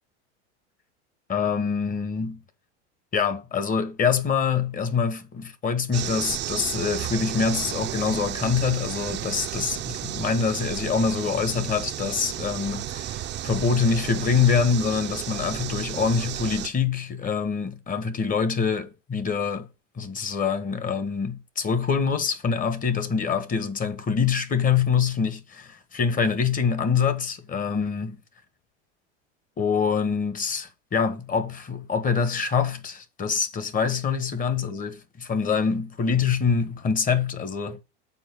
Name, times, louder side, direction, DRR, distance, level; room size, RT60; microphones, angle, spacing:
voice 1, 1.3-2.4 3.1-19.7 20.0-28.1 29.6-37.8, left 6 dB, 25° left, 1.2 m, -25 dB
sound 1, 5.9-16.7, right 12 dB, 30° right, 0.7 m, -33 dB
7.0 x 4.5 x 6.0 m
supercardioid pair, 115°, 35 cm